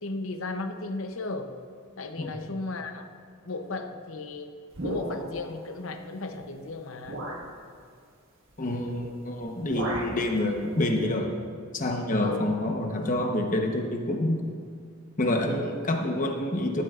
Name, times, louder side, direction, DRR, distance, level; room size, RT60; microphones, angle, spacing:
voice 1, 0.0-1.5 2.0-3.1 3.4-4.5 4.8-7.3 12.2-12.4, left 3 dB, 70° left, 7 dB, 0.7 m, -35 dB
sound 1, 4.7-5.5 6.4-6.5 7.1-7.5 8.9-9.2 9.4-10.2, right 1 dB, 65° right, 1.6 m, -34 dB
voice 2, 8.6-11.3 11.7-14.4 15.2-16.8, left 1 dB, 40° left, 3 dB, 1.0 m, -27 dB
14.0 x 13.0 x 2.5 m, 2.2 s
head